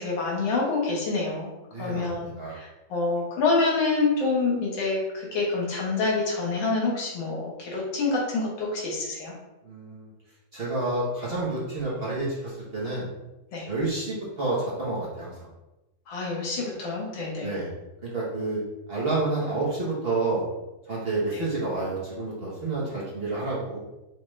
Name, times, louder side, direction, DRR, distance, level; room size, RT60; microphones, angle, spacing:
voice 1, 0.0-1.5 1.8-9.3 13.5-13.7 16.1-17.5 21.3-21.4, left 3 dB, 90° left, -2 dB, 1.9 m, -27 dB
voice 2, 1.7-2.6 9.6-10.1 10.5-13.1 13.6-15.5 17.4-17.7 18.0-18.6 18.9-20.4 20.9-23.8, right 2 dB, 40° right, -7 dB, 1.1 m, -29 dB
5.9 x 2.5 x 3.2 m, 1.0 s
omnidirectional pair, 2.0 m